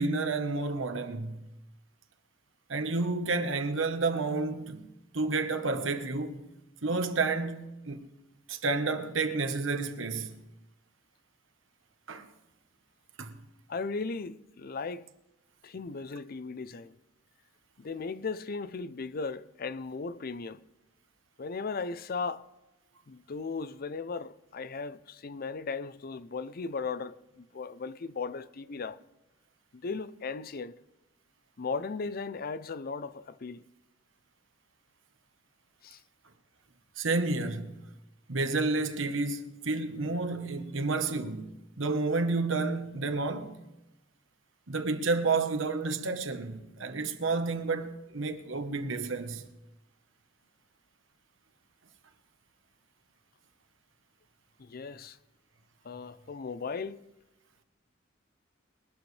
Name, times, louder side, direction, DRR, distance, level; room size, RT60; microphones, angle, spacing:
voice 1, 0.0-1.4 2.7-4.9 5.1-6.5 6.8-8.0 8.5-10.4 12.1-12.3 13.2-13.4 37.0-37.8 38.3-43.5 44.7-49.4, right 3 dB, 75° right, 1.2 m, -30 dB
voice 2, 13.7-15.1 15.6-17.0 17.8-20.6 21.4-22.5 23.1-29.0 29.7-30.8 31.6-33.6 35.8-36.0 54.6-55.2 55.8-57.0, left 4 dB, 50° left, 0.5 m, -37 dB
22.0 x 11.5 x 3.3 m
head